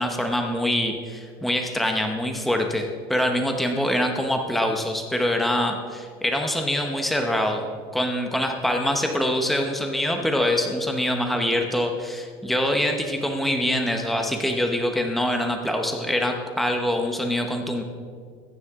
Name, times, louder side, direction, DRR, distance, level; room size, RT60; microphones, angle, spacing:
voice 1, 0.0-7.6 7.9-17.8, left 1 dB, ahead, 3 dB, 0.9 m, -24 dB
22.0 x 9.5 x 3.6 m, 2.1 s
cardioid pair, 165°, 12 cm